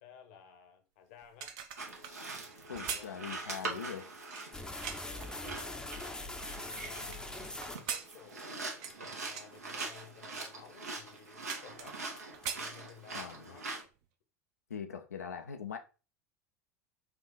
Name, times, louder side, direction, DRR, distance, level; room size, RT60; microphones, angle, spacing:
voice 1, 0.0-1.6 2.7-3.3 4.9-12.0 12.5-13.7, left 7 dB, 70° left, 0.9 m, -56 dB
sound 1, 1.2-5.2 5.8-7.2 7.6-9.5 9.8-10.1 10.7-10.8 11.0-12.1 12.3-13.3 13.7-13.9, right 7 dB, 55° right, 0.7 m, -42 dB
sound 2, 1.8-13.8, right 3 dB, 85° right, 0.9 m, -43 dB
voice 2, 2.7-4.1 13.1-13.4 14.7-15.8, left 7 dB, 90° left, 0.4 m, -41 dB
sound 3, 4.5-8.4 8.9-9.0 9.5-9.7 10.1-10.4 10.8-11.1 11.4-11.5 11.9-12.6, left 2 dB, 10° left, 0.5 m, -43 dB
4.3 x 2.4 x 3.8 m
hypercardioid pair, 80°, 8 cm